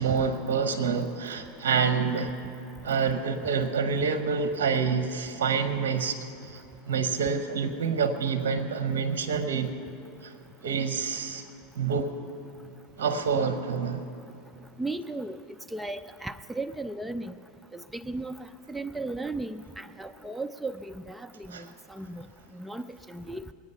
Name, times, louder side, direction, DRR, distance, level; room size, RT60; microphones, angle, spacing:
voice 1, 0.0-2.3 2.8-6.2 6.4-6.6 6.9-9.7 10.2-10.3 10.6-11.4 11.8-12.1 13.0-14.0 21.5-21.7, right 5 dB, 80° right, 9 dB, 0.8 m, -27 dB
voice 2, 14.8-15.4 15.7-17.4 17.7-22.3 22.5-23.4, right 2 dB, 5° right, 10 dB, 0.4 m, -36 dB
22.0 x 8.9 x 5.5 m, 2.7 s
hypercardioid pair, 110°, 0 cm